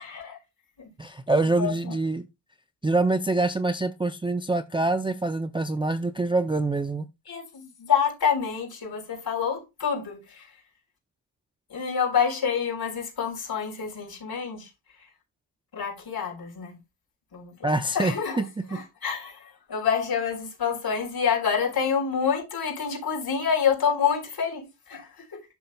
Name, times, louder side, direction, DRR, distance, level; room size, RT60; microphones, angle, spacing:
voice 1, 1.0-2.3 2.8-7.1 17.6-18.5 18.7-18.8, right 2 dB, 10° right, 0.4 m, -25 dB
voice 2, 7.3-10.5 11.7-14.7 15.7-16.8 17.3-18.4 18.7-25.4, left 7 dB, 55° left, 4.2 m, -27 dB
11.5 x 6.5 x 2.3 m
wide cardioid pair, 135°, 44 cm